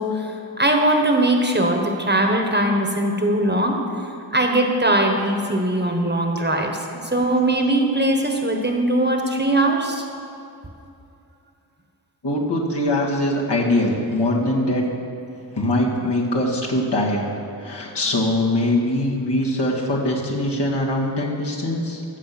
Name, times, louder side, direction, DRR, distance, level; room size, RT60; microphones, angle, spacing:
voice 1, 0.0-3.8 4.3-6.8 7.1-10.0, right 1 dB, 25° right, 2 dB, 1.3 m, -20 dB
voice 2, 12.2-14.9 15.5-22.0, left 1 dB, 65° left, -3 dB, 2.1 m, -22 dB
15.0 x 7.0 x 5.9 m, 2.6 s
wide cardioid pair, 80°, 43 cm